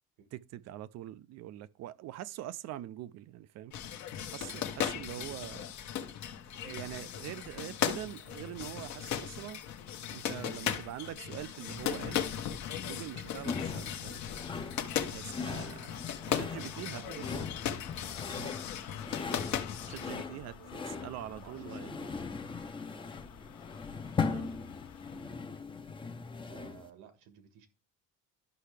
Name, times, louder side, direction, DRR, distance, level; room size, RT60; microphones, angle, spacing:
voice 1, 0.3-3.8 4.3-5.6 6.6-9.6 10.1-12.3 12.9-14.2 15.1-16.0 16.3-17.4 18.3-18.6 19.9-20.6 20.9-22.1 24.3-24.5, right 13 dB, 50° right, 0.5 m, -44 dB
sound 1, 3.7-20.2, left 9 dB, 55° left, 1.0 m, -37 dB
voice 2, 4.9-5.4 16.2-17.6 19.8-21.9 26.5-27.7, right 9 dB, 85° right, 1.6 m, -55 dB
sound 2, 13.3-25.4, left 8 dB, 70° left, 1.2 m, -52 dB
sound 3, 13.4-26.9, left 5 dB, 15° left, 0.6 m, -39 dB
12.0 x 5.7 x 3.3 m
cardioid pair, 130°, 33 cm